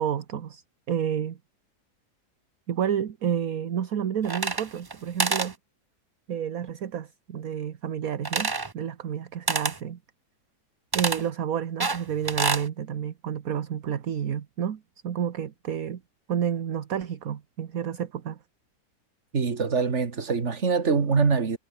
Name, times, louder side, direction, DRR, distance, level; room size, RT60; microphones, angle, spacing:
voice 1, 0.0-1.4 2.7-5.5 6.3-10.0 10.9-16.0 16.3-18.4, right 8 dB, 60° right, 1.6 m, -30 dB
sound 1, 4.2-4.9 5.2-5.5 8.3-8.7 9.5-9.8 10.9-11.2 11.8-12.7, right 3 dB, 25° right, 0.5 m, -27 dB
voice 2, 19.3-21.6, right 5 dB, 45° right, 2.3 m, -24 dB
omnidirectional pair, 1.7 m